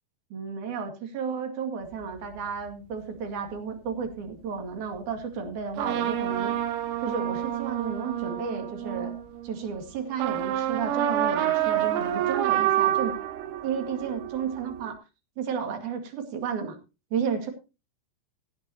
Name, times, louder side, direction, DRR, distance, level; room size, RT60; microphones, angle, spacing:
voice 1, 0.3-6.5 7.0-9.1 9.4-13.2 13.6-15.0 15.4-16.8 17.1-17.5, right 6 dB, 50° right, 4 dB, 2.9 m, -32 dB
sound 1, 1.9-2.4 3.5-3.6 5.7-9.7 10.1-14.9, right 11 dB, 85° right, 3.5 m, -28 dB
19.0 x 9.2 x 2.8 m, 0.30 s
omnidirectional pair, 5.8 m